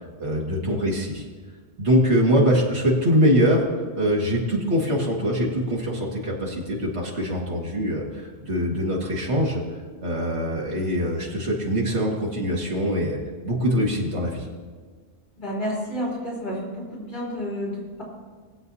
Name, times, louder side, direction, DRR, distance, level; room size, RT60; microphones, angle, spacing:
voice 1, 0.2-1.2 1.8-3.6 4.0-9.6 10.0-13.2 13.4-14.5, equal, 65° right, -2 dB, 2.2 m, -23 dB
voice 2, 15.4-18.0, equal, 40° left, -6 dB, 3.2 m, -30 dB
21.0 x 7.8 x 2.8 m, 1.5 s
omnidirectional pair, 1.3 m